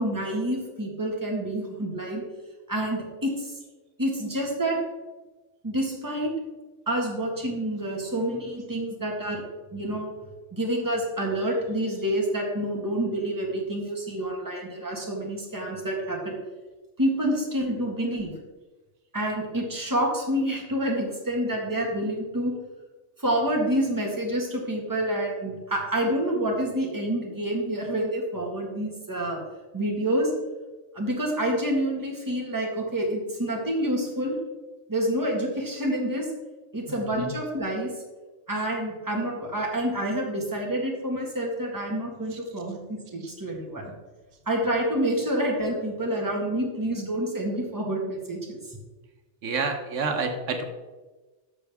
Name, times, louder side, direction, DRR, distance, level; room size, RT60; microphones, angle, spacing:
voice 1, 0.0-2.2 2.7-3.5 4.0-4.8 5.6-6.3 6.9-10.1 10.5-16.4 17.0-18.3 19.1-22.5 23.2-29.4 29.7-30.3 30.9-34.3 34.9-36.3 36.7-37.9 38.5-43.9 44.5-48.8, right 1 dB, 15° right, -1 dB, 1.7 m, -28 dB
voice 2, 36.9-37.3 43.2-43.3 49.4-50.6, right 4 dB, 90° right, 5 dB, 1.3 m, -29 dB
11.5 x 6.6 x 3.5 m, 1.2 s
omnidirectional pair, 1.2 m